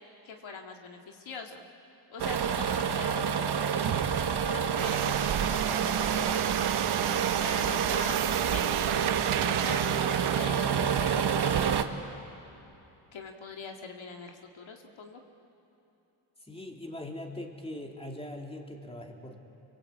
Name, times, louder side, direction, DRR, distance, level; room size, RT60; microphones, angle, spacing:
voice 1, 0.2-1.6 2.1-3.5 4.5-6.4 7.4-9.0 9.4-11.8 13.1-15.2, left 4 dB, 70° left, 2 dB, 2.2 m, -43 dB
sound 1, 2.2-11.8, right 7 dB, 55° right, 1.4 m, -28 dB
sound 2, 4.8-10.4, right 10 dB, 90° right, 1.0 m, -32 dB
voice 2, 16.4-19.4, left 1 dB, 10° left, 1 dB, 2.8 m, -41 dB
30.0 x 23.5 x 8.4 m, 2.9 s
cardioid pair, 105°, 48 cm